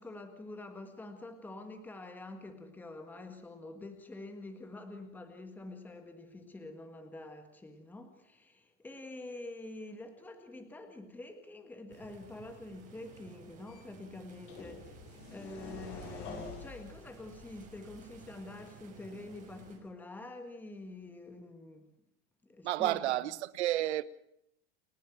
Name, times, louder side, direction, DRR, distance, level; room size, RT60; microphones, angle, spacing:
voice 1, 0.0-21.9 22.4-23.4, left 2 dB, 5° left, 1.7 m, -47 dB
sound 1, 11.9-19.8, right 6 dB, 20° right, 6.0 m, -56 dB
sound 2, 13.7-13.8 14.5-18.2, left 4 dB, 40° left, 6.3 m, -47 dB
voice 2, 22.6-24.0, right 15 dB, 70° right, 1.2 m, -31 dB
30.0 x 10.0 x 9.2 m
supercardioid pair, 170°, 35 cm